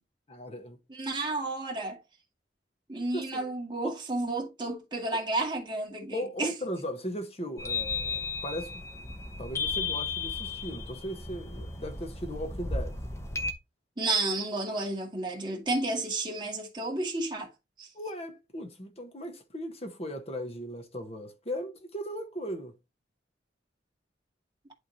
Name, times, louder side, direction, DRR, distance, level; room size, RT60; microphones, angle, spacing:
voice 1, 0.3-0.8 3.1-3.4 3.8-3.9 6.1-9.1 9.4-13.0 17.9-22.7, equal, 35° left, 1.3 m, -37 dB
voice 2, 0.9-2.0 2.9-6.5 14.0-17.5 17.8-17.9, right 2 dB, 25° right, 2.1 m, -31 dB
sound 1, 7.6-13.5, left 4 dB, 15° left, 0.9 m, -34 dB
11.0 x 3.7 x 2.9 m
head